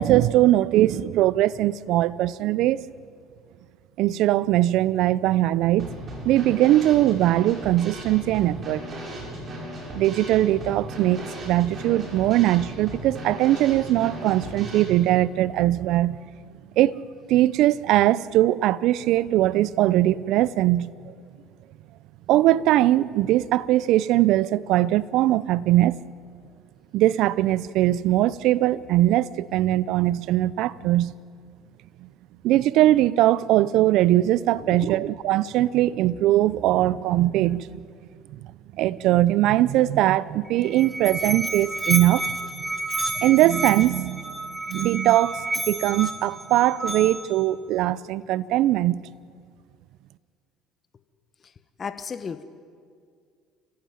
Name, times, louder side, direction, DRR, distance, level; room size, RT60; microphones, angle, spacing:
voice 1, 0.0-2.8 4.0-5.9 6.2-8.8 9.9-16.2 16.8-17.0 17.3-20.9 22.3-26.0 26.9-31.1 32.4-37.8 38.7-42.3 43.2-44.3 44.7-49.0, right 14 dB, 65° right, 0.6 m, -21 dB
Drum kit / Snare drum, 5.8-14.8, right 1 dB, 40° right, 7.6 m, -36 dB
voice 2, 34.5-35.1 51.8-52.4, left 6 dB, 35° left, 1.4 m, -35 dB
Musical instrument, 40.5-47.4, right 2 dB, 15° right, 2.5 m, -30 dB
29.5 x 15.5 x 9.2 m
hypercardioid pair, 75°, 0 cm